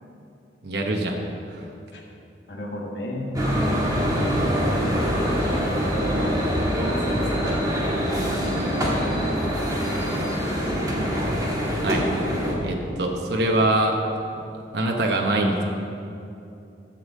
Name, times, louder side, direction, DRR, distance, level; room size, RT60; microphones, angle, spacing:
voice 1, 0.6-1.2 1.5-1.6 11.8-12.1 12.6-14.0 14.7-15.6, right 1 dB, 65° right, 1 dB, 1.0 m, -23 dB
voice 2, 2.5-3.4 4.0-4.9 5.9-6.4 6.8-7.4 9.1-9.4 10.0-10.3, equal, 70° left, -3 dB, 1.7 m, -33 dB
sound 1, 3.3-12.5, equal, 20° right, 1.7 m, -24 dB
12.0 x 5.3 x 7.4 m, 2.7 s
head